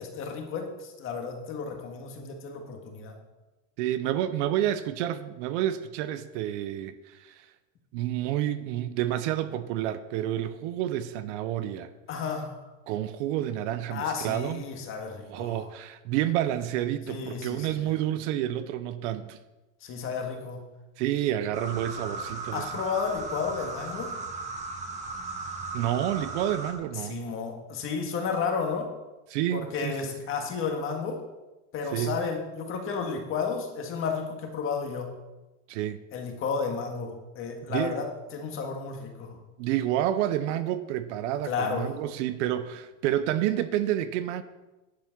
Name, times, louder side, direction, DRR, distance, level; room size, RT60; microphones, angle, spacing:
voice 1, 0.0-3.2 12.1-12.6 13.9-15.7 17.1-17.9 19.8-20.6 22.5-24.1 26.9-28.9 29.5-31.2 31.7-35.1 36.1-39.4 41.4-41.9, left 5 dB, 30° left, 1.8 m, -32 dB
voice 2, 3.8-7.4 7.9-11.9 12.9-14.6 15.3-19.4 21.0-22.7 25.7-27.3 29.3-30.1 31.9-32.2 35.7-36.0 37.7-38.1 39.6-44.4, right 12 dB, 60° right, 0.8 m, -29 dB
sound 1, 21.5-26.7, right 3 dB, 15° right, 1.5 m, -36 dB
10.5 x 7.7 x 5.9 m
supercardioid pair, 165°, 40 cm